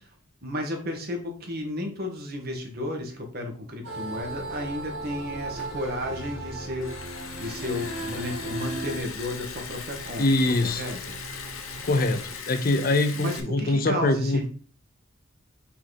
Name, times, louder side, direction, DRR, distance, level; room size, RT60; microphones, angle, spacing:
voice 1, 0.4-10.3 10.6-11.2 13.2-14.5, left 1 dB, 50° right, 2 dB, 1.5 m, -33 dB
sound 1, 3.8-9.0, right 2 dB, 65° right, 2.2 m, -36 dB
sound 2, 4.1-12.4, right 2 dB, 80° right, 0.7 m, -46 dB
Liquid, 5.3-13.4, left 6 dB, 90° left, 1.0 m, -40 dB
voice 2, 10.2-10.8 11.8-14.5, left 2 dB, 45° left, 9 dB, 0.6 m, -23 dB
5.9 x 4.2 x 4.0 m, 0.40 s
head